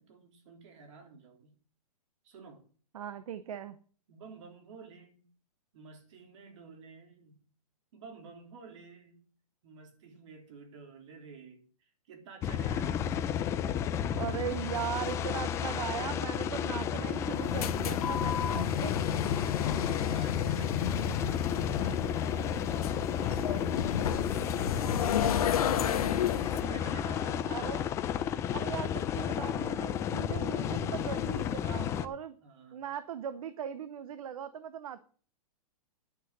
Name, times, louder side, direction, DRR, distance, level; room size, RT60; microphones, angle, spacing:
voice 1, 0.0-1.6 2.2-2.7 4.1-5.3 5.7-7.5 7.9-9.3 9.6-13.1 18.2-18.7 19.0-25.6 26.4-27.7 32.4-32.9, right 4 dB, 50° right, 3.6 m, -51 dB
voice 2, 2.9-3.8 14.2-18.9 27.5-27.9 28.5-32.4 32.7-35.0, right 9 dB, 65° right, 1.0 m, -39 dB
sound 1, 12.4-32.1, left 8 dB, 15° left, 0.5 m, -32 dB
sound 2, 15.0-27.2, left 1 dB, 5° right, 2.5 m, -48 dB
sound 3, 17.3-26.6, left 9 dB, 70° left, 1.0 m, -32 dB
10.5 x 6.4 x 6.7 m
hypercardioid pair, 155°, 19 cm